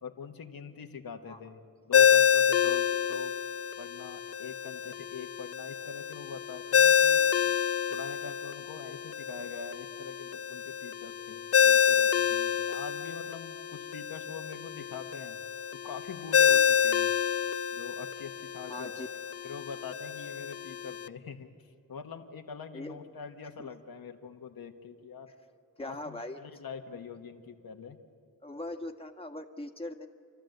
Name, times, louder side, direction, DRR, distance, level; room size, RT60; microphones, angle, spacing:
voice 1, 0.0-3.3 3.8-7.2 7.9-15.4 15.7-17.1 17.7-25.3 25.8-28.0, left 6 dB, 85° left, 4 dB, 1.3 m, -44 dB
Ringtone, 1.9-21.1, left 8 dB, 45° left, 0.5 m, -28 dB
voice 2, 18.7-19.1 22.7-23.0 23.6-23.7 25.8-26.4 28.4-30.1, left 1 dB, 15° left, 3 dB, 1.4 m, -40 dB
29.5 x 12.5 x 7.9 m, 2.4 s
cardioid pair, 60°, 35 cm